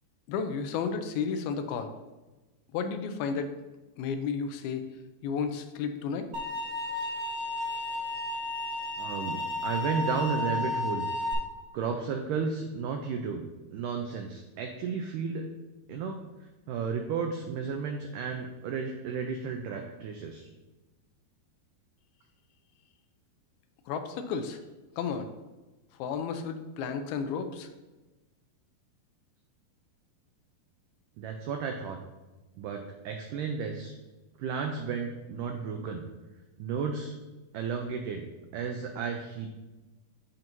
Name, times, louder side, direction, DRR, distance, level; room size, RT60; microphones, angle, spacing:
voice 1, 0.3-1.9 2.7-3.5 4.0-4.9 5.2-6.3 23.9-24.6 25.0-25.3 26.0-27.7, left 6 dB, 85° left, 8 dB, 2.5 m, -32 dB
sound 1, 6.3-11.3, left 2 dB, 70° right, 1.2 m, -32 dB
voice 2, 9.0-11.1 11.7-15.4 15.9-16.2 16.7-20.5 31.2-32.0 32.6-33.9 34.4-36.0 36.6-37.1 37.5-39.5, right 5 dB, 90° right, 4 dB, 1.8 m, -33 dB
12.0 x 4.4 x 2.6 m, 1.1 s
omnidirectional pair, 4.4 m